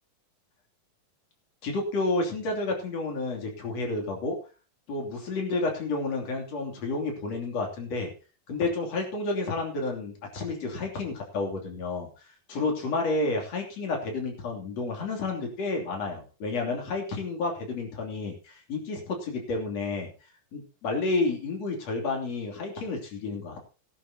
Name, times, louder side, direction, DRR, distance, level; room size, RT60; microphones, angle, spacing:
voice 1, 1.6-4.4 4.9-8.1 8.5-12.1 12.5-20.1 20.5-23.6, left 3 dB, 50° left, 1 dB, 4.0 m, -30 dB
18.5 x 11.0 x 2.9 m, 0.33 s
omnidirectional pair, 3.9 m